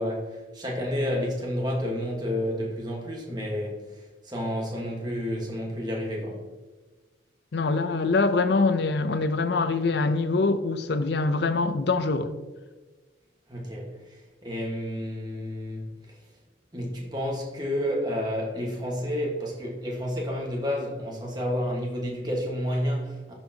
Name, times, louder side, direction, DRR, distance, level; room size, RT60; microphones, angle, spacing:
voice 1, 0.0-3.8 4.2-6.4 13.5-13.9 14.4-15.8 16.7-23.3, equal, 20° right, 1.4 m, -30 dB
voice 2, 7.5-12.3, left 3 dB, 60° left, 0.5 m, -24 dB
11.5 x 4.5 x 2.8 m
head